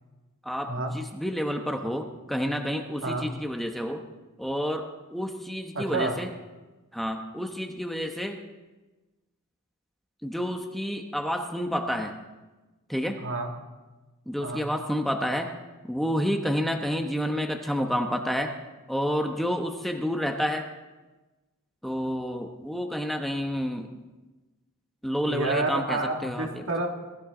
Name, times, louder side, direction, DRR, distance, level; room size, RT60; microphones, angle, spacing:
voice 1, 0.4-4.0 4.4-6.3 6.9-8.4 10.2-12.1 12.9-13.2 14.3-15.5 15.9-18.5 18.9-20.7 21.8-23.9 25.0-26.6, equal, ahead, 3 dB, 1.0 m, -29 dB
voice 2, 5.7-6.1 13.2-13.5 14.4-14.6 25.3-26.9, right 2 dB, 60° right, 2 dB, 2.2 m, -29 dB
22.5 x 14.0 x 3.8 m, 1.2 s
head